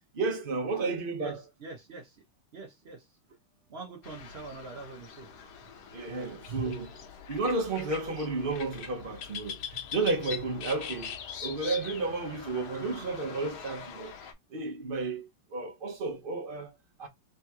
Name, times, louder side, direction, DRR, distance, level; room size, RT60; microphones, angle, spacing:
voice 1, 0.1-1.4 5.9-6.9 7.3-11.1 11.4-14.1 14.5-16.7 17.0-17.1, right 3 dB, 40° right, 0.8 m, -32 dB
voice 2, 1.2-2.2 2.5-3.1 3.7-5.3 6.4-6.5, right 3 dB, 70° right, 0.6 m, -44 dB
sound 1, 4.0-14.3, left 8 dB, 65° left, 1.2 m, -43 dB
3.7 x 3.0 x 3.5 m
omnidirectional pair, 2.2 m